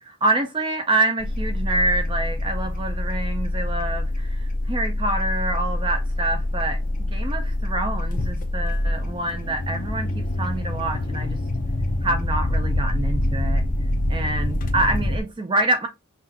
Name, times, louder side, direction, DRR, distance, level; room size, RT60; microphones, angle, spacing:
voice 1, 0.0-11.4 12.0-13.6 14.1-15.9, right 2 dB, 20° right, 0.4 m, -26 dB
sound 1, 1.2-15.2, left 1 dB, 35° left, 0.6 m, -25 dB
5.7 x 2.4 x 2.7 m
head